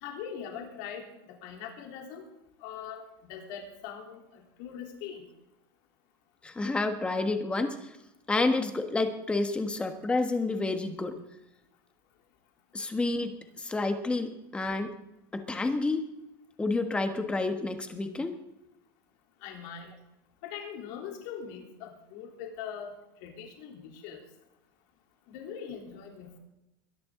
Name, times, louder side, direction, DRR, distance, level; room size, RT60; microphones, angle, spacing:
voice 1, 0.0-2.2 2.6-3.0 3.3-4.2 4.6-5.2 19.4-19.9 20.4-22.9 23.2-24.2 25.3-26.4, left 8 dB, 60° left, 1 dB, 3.5 m, -41 dB
voice 2, 6.4-7.9 8.3-11.2 12.7-14.9 15.3-16.1 16.6-18.4, left 3 dB, 10° left, 7 dB, 1.3 m, -29 dB
22.0 x 10.5 x 3.8 m, 0.91 s
supercardioid pair, 150°, 11 cm